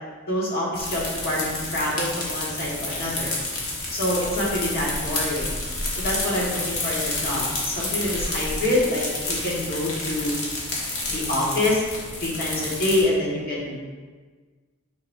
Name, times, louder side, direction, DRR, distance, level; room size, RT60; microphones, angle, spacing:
voice 1, 0.2-3.3 3.9-5.4 6.0-10.4 11.1-11.8 12.2-13.7, left 1 dB, 45° left, -5 dB, 1.7 m, -26 dB
sound 1, 0.7-13.0, left 2 dB, 65° left, 1.5 m, -30 dB
7.7 x 5.2 x 2.7 m, 1.4 s
head